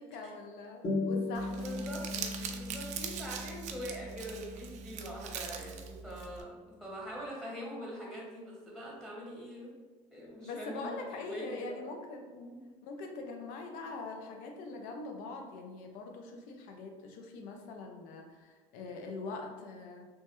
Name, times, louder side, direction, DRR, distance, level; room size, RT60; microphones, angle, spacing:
voice 1, 0.0-1.7 2.1-2.5 10.4-12.4 12.8-20.1, left 3 dB, 80° left, 3 dB, 0.5 m, -43 dB
sound 1, 0.8-5.8, left 3 dB, 50° left, 1.4 m, -38 dB
Crumpling crinkling, 1.3-6.4, right 7 dB, 60° right, 0.4 m, -42 dB
voice 2, 1.5-2.1 2.4-6.5 6.8-9.7 10.1-11.9 12.3-12.6 13.2-13.5, equal, 5° left, -4 dB, 0.9 m, -43 dB
3.1 x 2.1 x 2.9 m, 1.4 s
supercardioid pair, 90°, 14 cm